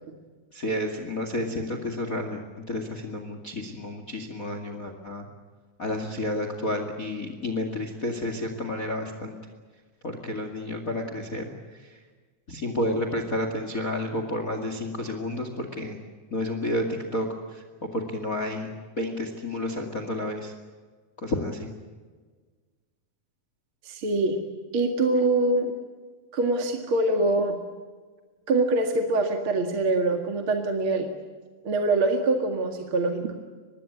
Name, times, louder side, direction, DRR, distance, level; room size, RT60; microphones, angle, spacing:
voice 1, 0.5-2.4 2.7-5.3 5.8-9.4 10.0-11.5 11.8-12.0 12.5-16.0 16.3-20.5 21.2-21.7, left 1 dB, 30° left, 6 dB, 2.1 m, -31 dB
voice 2, 23.8-24.4 24.7-25.7 26.3-27.6 28.5-31.1 31.6-33.3, right 2 dB, 40° right, 4 dB, 2.5 m, -24 dB
25.0 x 20.5 x 8.7 m, 1.4 s
omnidirectional pair, 4.0 m